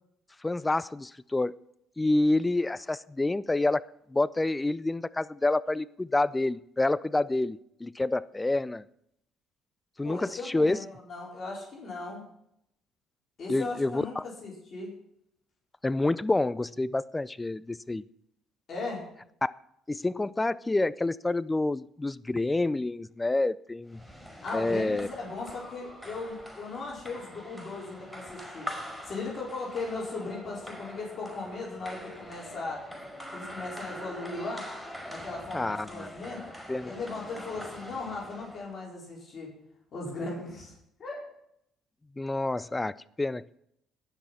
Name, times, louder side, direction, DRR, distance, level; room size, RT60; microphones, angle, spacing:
voice 1, 0.4-1.5 2.0-8.8 10.0-10.8 13.5-14.2 15.8-18.0 19.4-19.5 19.9-24.0 24.5-25.1 35.5-36.1 36.7-36.9 42.2-43.6, left 2 dB, 15° left, 19 dB, 0.4 m, -28 dB
voice 2, 10.0-12.2 13.4-14.9 18.7-19.0 24.4-28.7 29.0-32.8 33.3-34.6 35.1-36.4 36.8-39.5 39.9-40.7 41.0-41.2, left 3 dB, 50° left, -4 dB, 4.5 m, -37 dB
sound 1, 23.9-38.7, equal, ahead, 5.1 m, -43 dB
18.0 x 6.3 x 5.7 m, 0.75 s
supercardioid pair, 70°, 0 cm